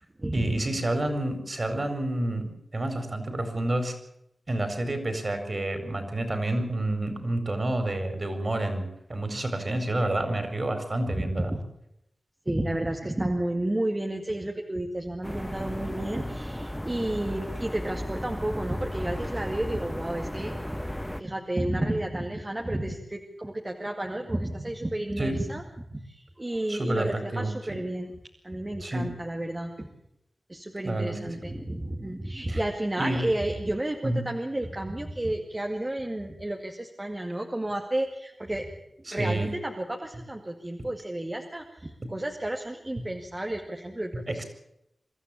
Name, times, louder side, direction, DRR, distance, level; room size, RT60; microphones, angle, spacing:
voice 1, 0.3-3.9 4.5-11.5 25.2-25.4 26.7-27.8 28.8-29.1 30.8-31.4 32.5-32.6 33.0-33.3 34.0-34.3 39.1-39.5 42.0-42.1 43.0-43.1 44.1-44.4, right 1 dB, 40° right, 7 dB, 4.6 m, -29 dB
voice 2, 11.2-11.6 12.5-20.8 21.2-25.6 25.9-28.1 28.4-29.9 30.5-38.7 39.1-44.4, right 1 dB, 25° right, 2 dB, 2.2 m, -31 dB
sound 1, 15.2-21.2, equal, 5° left, 1.2 m, -35 dB
25.0 x 13.0 x 8.7 m, 0.80 s
wide cardioid pair, 65°, 0 cm